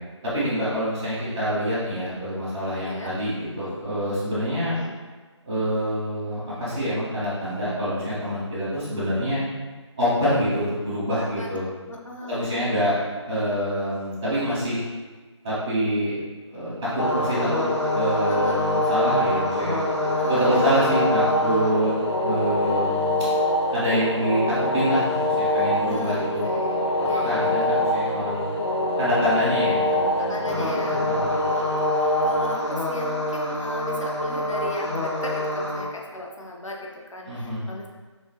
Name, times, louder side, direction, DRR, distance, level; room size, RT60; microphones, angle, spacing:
voice 1, 0.2-4.7 5.4-9.4 10.0-11.7 12.3-13.0 13.2-14.8 15.4-16.2 16.5-17.6 17.9-19.8 20.3-21.9 22.2-23.2 23.7-26.4 27.2-28.5 29.0-31.3 37.2-37.6, equal, 5° right, -23 dB, 0.9 m, -26 dB
voice 2, 11.9-12.8 18.3-18.6 20.1-21.1 25.8-27.7 30.2-31.0 31.5-37.9, left 1 dB, 90° left, -1 dB, 0.8 m, -37 dB
sound 1, 17.0-35.8, left 1 dB, 65° left, 1.0 m, -24 dB
5.5 x 3.0 x 3.1 m, 1.3 s
figure-of-eight pair, 175°, 16 cm